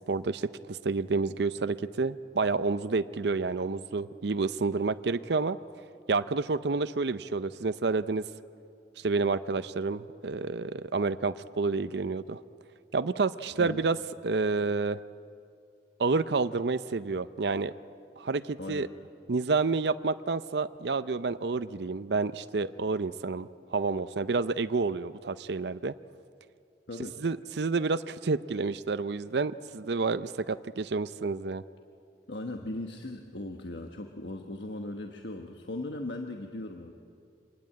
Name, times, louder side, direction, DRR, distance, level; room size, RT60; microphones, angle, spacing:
voice 1, 0.1-5.6 6.1-8.2 9.0-12.4 12.9-14.0 14.2-15.0 16.0-17.7 18.2-18.9 19.3-25.9 27.2-31.6, right 4 dB, 70° right, 13 dB, 0.6 m, -29 dB
voice 2, 26.9-27.2 32.3-36.9, left 2 dB, 80° left, 4 dB, 1.3 m, -38 dB
25.5 x 20.0 x 8.6 m, 2.4 s
head